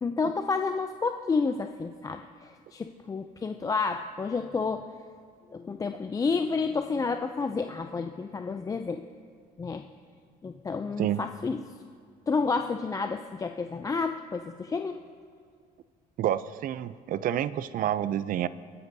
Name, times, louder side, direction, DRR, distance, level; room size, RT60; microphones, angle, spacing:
voice 1, 0.0-4.8 5.5-9.1 9.6-9.9 10.4-11.7 12.3-15.0, left 4 dB, 20° left, 7 dB, 0.4 m, -30 dB
voice 2, 16.2-18.5, right 11 dB, 55° right, 16 dB, 0.4 m, -28 dB
24.0 x 9.7 x 2.7 m, 2.2 s
cardioid pair, 110°, 17 cm